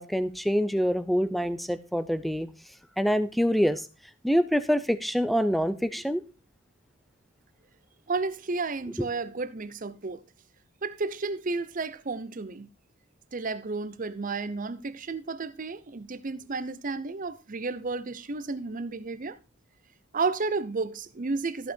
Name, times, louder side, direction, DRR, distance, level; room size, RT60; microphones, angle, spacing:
voice 1, 0.0-2.5 3.0-3.8 4.2-6.2 9.0-9.1, equal, ahead, 0.5 m, -25 dB
voice 2, 8.1-10.2 10.8-12.7 13.3-19.4 20.1-21.7, right 3 dB, 40° right, 0.7 m, -32 dB
14.0 x 5.8 x 4.4 m
head